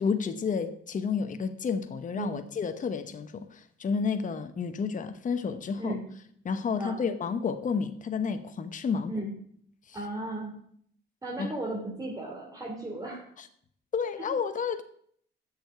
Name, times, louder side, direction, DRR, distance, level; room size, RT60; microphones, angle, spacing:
voice 1, 0.0-6.0 6.4-9.1 9.9-10.0 11.4-11.5 13.4-13.5 13.9-14.8, left 5 dB, 40° left, 8 dB, 0.9 m, -31 dB
voice 2, 9.9-10.5 11.2-13.2 14.2-14.3, right 1 dB, 20° right, -3 dB, 2.7 m, -35 dB
7.7 x 6.7 x 8.0 m, 0.64 s
cardioid pair, 90°, 20 cm